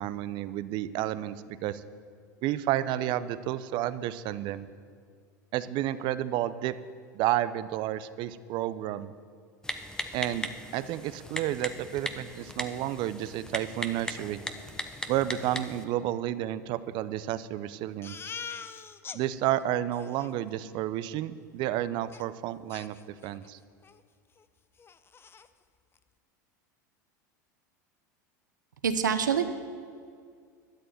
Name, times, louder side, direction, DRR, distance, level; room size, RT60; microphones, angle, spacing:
voice 1, 0.0-1.8 2.4-4.7 5.5-6.7 7.1-9.1 10.1-14.4 15.1-18.2 19.1-23.6, right 13 dB, 50° right, 15 dB, 0.7 m, -31 dB
Typing, 9.6-15.8, left 1 dB, 5° left, 1.0 m, -38 dB
Crying sobbing, 18.0-19.2 19.6-19.7 19.9-20.3 22.1-22.2 22.7-23.5 23.8-24.0 24.4-24.5 24.8-25.5, left 6 dB, 25° left, 0.6 m, -43 dB
voice 2, 28.8-29.4, right 7 dB, 90° right, 9 dB, 1.0 m, -25 dB
12.5 x 6.8 x 9.4 m, 2.2 s
hypercardioid pair, 95°, 10 cm